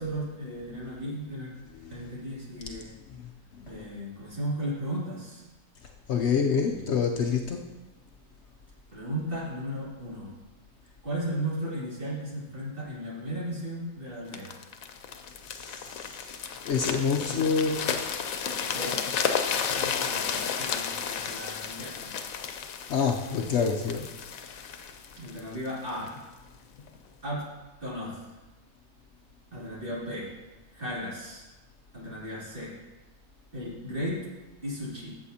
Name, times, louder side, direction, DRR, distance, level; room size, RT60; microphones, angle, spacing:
voice 1, 0.0-1.6 1.9-2.9 3.7-5.4 6.6-6.9 8.9-10.3 11.0-14.6 17.3-17.5 18.7-19.0 19.7-22.5 25.2-26.1 27.2-27.5 27.8-28.2 29.5-30.3 30.7-31.5 31.9-32.8 33.5-34.3 34.6-35.2, equal, 40° right, -7 dB, 2.9 m, -35 dB
voice 2, 1.7-2.1 2.6-2.7 3.5-3.8 6.1-7.7 15.5-16.3 16.6-17.9 22.9-24.1, left 5 dB, 65° left, 2 dB, 0.8 m, -27 dB
sound 1, 14.3-26.2 26.8-27.0, left 7 dB, 85° left, 1.1 m, -33 dB
13.0 x 7.5 x 2.8 m, 1.1 s
omnidirectional pair, 1.4 m